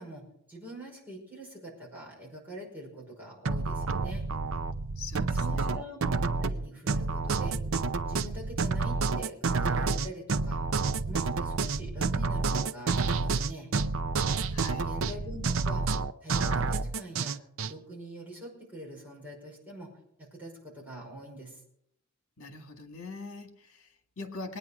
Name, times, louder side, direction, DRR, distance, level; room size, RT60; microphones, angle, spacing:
voice 1, 0.0-4.3 5.3-7.6 8.1-10.6 11.0-13.7 14.8-15.8 16.2-19.9 20.2-21.6, right 1 dB, 10° right, -4 dB, 5.4 m, -44 dB
sound 1, 3.4-17.7, right 4 dB, 65° right, 0.6 m, -29 dB
voice 2, 5.0-5.9 14.5-14.9 22.4-24.6, left 3 dB, 70° left, 5 dB, 2.0 m, -43 dB
21.0 x 9.7 x 4.9 m, 0.72 s
head